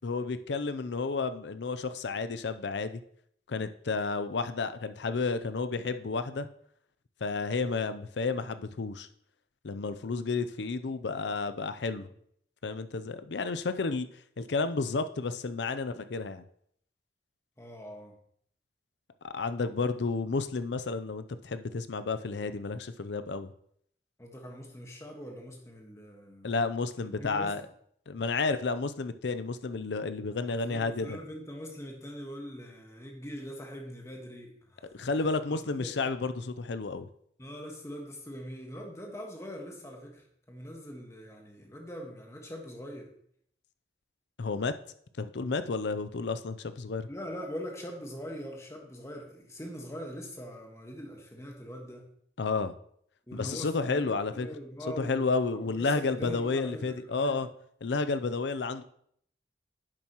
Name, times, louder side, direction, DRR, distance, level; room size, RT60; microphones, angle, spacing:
voice 1, 0.0-3.0 3.5-6.5 7.2-9.1 9.6-12.1 12.6-14.1 14.4-16.4 19.2-23.5 26.4-27.6 28.1-31.2 34.9-37.1 44.4-44.7 45.2-47.1 52.4-52.7 53.3-54.5 55.0-57.5 57.8-58.8, left 4 dB, 85° left, 11 dB, 0.6 m, -31 dB
voice 2, 17.6-18.2 24.2-26.5 27.2-27.6 30.3-36.0 37.4-43.1 47.1-52.1 53.3-57.5, equal, 15° left, 1 dB, 1.5 m, -42 dB
10.0 x 7.2 x 3.0 m, 0.67 s
head